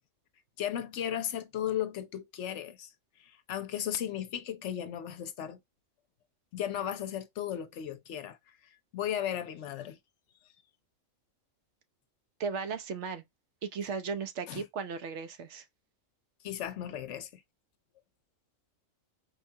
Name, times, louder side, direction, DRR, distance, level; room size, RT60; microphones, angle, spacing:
voice 1, 0.6-2.9 3.2-5.6 6.5-8.4 8.9-10.0 14.5-14.6 16.4-17.4, left 10 dB, 70° left, 0.9 m, -35 dB
voice 2, 12.4-13.2 13.6-15.6, right 5 dB, 70° right, 0.8 m, -36 dB
4.5 x 2.3 x 2.7 m
omnidirectional pair, 1.3 m